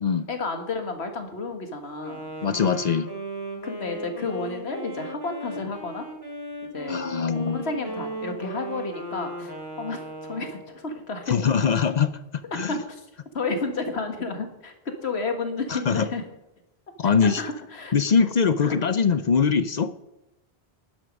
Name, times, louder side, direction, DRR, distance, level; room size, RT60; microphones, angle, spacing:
voice 1, 0.3-2.2 3.6-6.1 6.6-7.0 7.4-11.7 12.5-13.1 13.3-16.2 17.2-18.0 18.6-18.8, left 3 dB, 85° left, 5 dB, 1.9 m, -31 dB
Wind instrument woodwind instrument, 1.9-10.8, right 1 dB, 20° right, 2.6 m, -37 dB
voice 2, 2.4-3.1 6.9-7.6 11.3-12.2 12.5-12.7 15.7-16.1 17.0-17.4 17.9-19.9, left 6 dB, 50° left, 12 dB, 0.6 m, -22 dB
11.5 x 11.0 x 5.2 m, 0.93 s
omnidirectional pair, 1.1 m